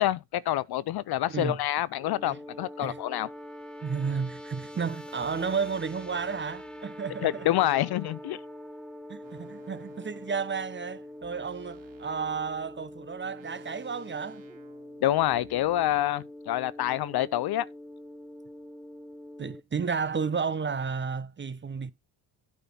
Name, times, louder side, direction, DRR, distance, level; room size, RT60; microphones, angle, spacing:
voice 1, 0.0-3.3 7.2-8.4 15.0-17.7, left 14 dB, 55° left, 0.5 m, -27 dB
voice 2, 1.3-1.6 2.2-2.4 2.8-3.0 3.8-7.5 9.1-14.4 19.4-21.9, right 5 dB, 25° right, 0.7 m, -32 dB
sound 1, 1.9-19.6, left 1 dB, ahead, 0.9 m, -44 dB
sound 2, 5.2-8.6 9.2-16.0, right 5 dB, 70° right, 2.4 m, -57 dB
9.0 x 4.2 x 5.5 m
supercardioid pair, 75°, 47 cm